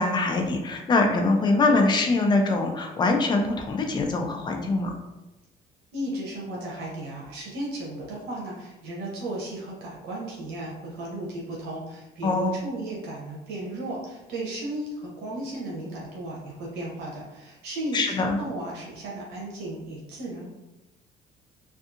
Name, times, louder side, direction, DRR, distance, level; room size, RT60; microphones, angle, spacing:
voice 1, 0.0-4.9 12.2-12.6 17.9-18.4, left 3 dB, 25° left, 3 dB, 0.4 m, -23 dB
voice 2, 5.9-20.5, right 1 dB, 85° right, -4 dB, 0.8 m, -35 dB
2.6 x 2.4 x 2.4 m, 1.0 s
cardioid pair, 110°, 17 cm